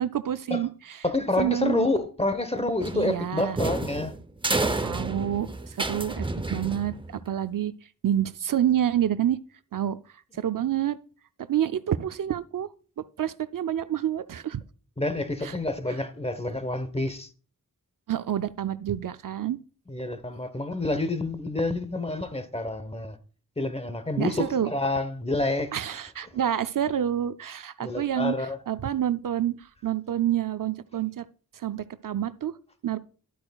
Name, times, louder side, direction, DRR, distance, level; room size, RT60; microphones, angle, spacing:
voice 1, 0.0-1.0 1.4-1.9 2.9-3.6 4.8-7.7 8.0-9.4 9.7-10.0 10.3-11.0 11.4-12.7 13.0-14.6 15.4-15.5 18.1-19.6 24.2-24.7 25.7-28.3 28.7-31.2 31.5-32.5 32.8-33.0, right 10 dB, 65° right, 0.5 m, -28 dB
voice 2, 1.0-4.1 15.0-17.3 19.9-23.2 23.6-25.7 27.8-28.6, left 2 dB, 15° left, 0.9 m, -28 dB
sound 1, 2.8-7.3, right 2 dB, 15° right, 0.6 m, -30 dB
12.0 x 8.7 x 2.3 m
wide cardioid pair, 110°, 35 cm